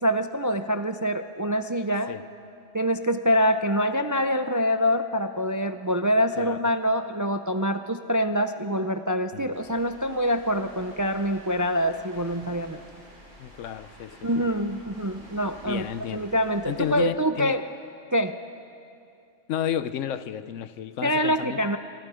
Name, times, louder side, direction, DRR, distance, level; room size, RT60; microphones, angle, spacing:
voice 1, 0.0-2.1 2.7-12.8 14.2-15.8 16.1-17.6 18.1-18.4 21.0-21.8, equal, 30° right, 8 dB, 0.4 m, -25 dB
sound 1, 9.5-17.0, equal, 85° right, 7.4 m, -49 dB
voice 2, 13.4-14.3 15.7-16.3 16.6-17.6 19.5-21.6, left 10 dB, 85° left, 14 dB, 1.1 m, -32 dB
28.5 x 24.0 x 5.0 m, 2.5 s
omnidirectional pair, 1.3 m